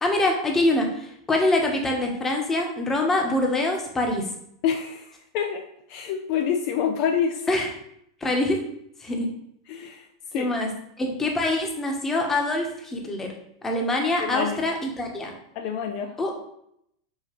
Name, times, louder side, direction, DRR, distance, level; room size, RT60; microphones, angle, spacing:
voice 1, 0.0-4.2 7.5-7.7 8.2-8.6 9.0-9.3 10.3-10.7 11.0-13.3 13.6-15.3 16.2-16.3, left 2 dB, 15° left, 1 dB, 1.1 m, -24 dB
voice 2, 4.6-5.6 5.9-7.4 9.7-10.0 10.3-10.5 14.2-14.6 15.6-16.1, left 7 dB, 55° left, 4 dB, 0.4 m, -27 dB
5.6 x 2.7 x 3.2 m, 0.74 s
hypercardioid pair, 100°, 2 cm